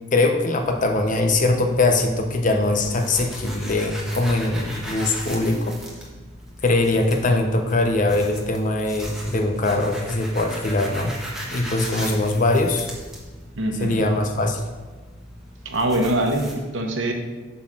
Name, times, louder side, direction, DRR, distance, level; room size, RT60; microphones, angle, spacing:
voice 1, 0.1-5.8 6.6-11.1 11.5-12.9 13.8-14.7, left 2 dB, 40° left, 5 dB, 0.7 m, -21 dB
sound 1, 0.6-16.5, equal, 5° right, 1.2 m, -38 dB
voice 2, 13.6-14.0 15.6-17.1, right 1 dB, 70° right, 3 dB, 1.0 m, -23 dB
7.8 x 4.0 x 6.1 m, 1.3 s
head